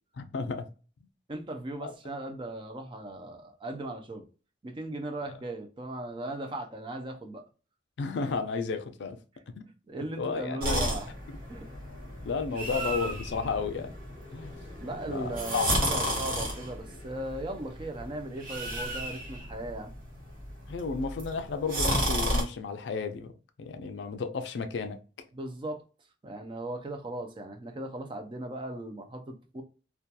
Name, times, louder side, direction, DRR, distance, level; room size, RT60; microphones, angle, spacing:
voice 1, 0.2-0.7 1.8-1.9 8.0-9.2 9.6-9.7 10.2-11.0 12.2-13.9 14.3-14.5 15.1-15.7 20.7-23.3 23.6-25.0, left 4 dB, 75° left, 0.4 m, -33 dB
voice 2, 1.3-4.2 4.6-7.4 9.9-11.1 11.5-11.7 12.6-13.0 14.8-19.9 25.3-25.8 26.2-29.6, right 1 dB, 25° right, 0.4 m, -38 dB
sound 1, 10.6-22.4, equal, 50° right, 0.9 m, -33 dB
2.7 x 2.2 x 2.2 m
head